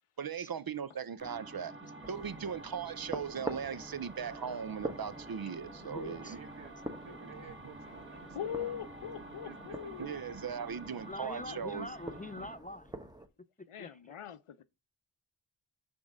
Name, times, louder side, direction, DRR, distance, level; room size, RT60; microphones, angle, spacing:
voice 1, 0.2-1.7 2.1-6.4 10.0-11.9, right 7 dB, 50° right, 0.6 m, -38 dB
sound 1, 1.2-12.7, right 2 dB, 25° right, 1.5 m, -49 dB
sound 2, 2.0-13.3, right 2 dB, 10° right, 1.0 m, -47 dB
voice 2, 2.3-2.6 6.2-6.7 7.0-8.7 9.3-10.3, right 7 dB, 70° right, 1.2 m, -55 dB
voice 3, 5.8-6.3 10.9-12.9 13.6-14.2, left 1 dB, 20° left, 0.3 m, -44 dB
voice 4, 8.3-10.1 11.5-11.9 13.7-14.6, left 8 dB, 85° left, 0.7 m, -41 dB
6.1 x 3.6 x 4.9 m
wide cardioid pair, 50°, 49 cm